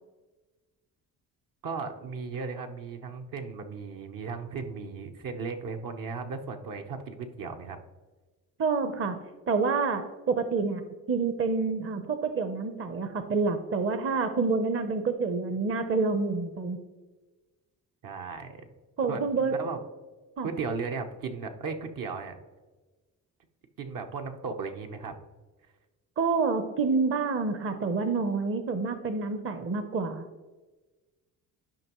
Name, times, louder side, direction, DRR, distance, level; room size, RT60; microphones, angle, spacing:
voice 1, 1.6-7.8 18.0-18.6 19.1-19.8 20.4-22.4 23.8-25.1, right 4 dB, 60° right, 4 dB, 1.0 m, -36 dB
voice 2, 8.6-9.2 9.5-10.0 10.3-10.8 11.1-16.8 19.0-19.6 20.4-20.5 26.2-30.3, right 4 dB, 35° right, 9 dB, 0.8 m, -28 dB
11.5 x 5.2 x 3.0 m, 1.2 s
supercardioid pair, 70°, 38 cm